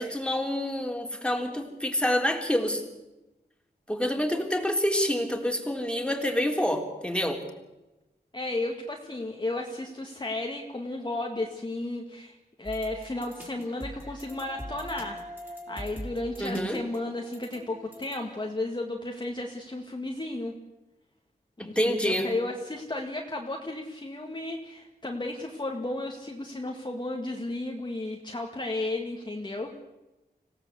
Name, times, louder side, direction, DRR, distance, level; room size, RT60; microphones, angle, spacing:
voice 1, 0.0-2.8 3.9-7.4 16.4-16.8 21.6-22.3, equal, 5° left, 3 dB, 3.6 m, -27 dB
voice 2, 8.3-20.5 21.6-29.7, left 2 dB, 25° left, 1 dB, 2.1 m, -33 dB
sound 1, 12.6-18.5, equal, 10° right, 5.2 m, -43 dB
26.0 x 17.0 x 8.2 m, 1.0 s
wide cardioid pair, 95°, 17 cm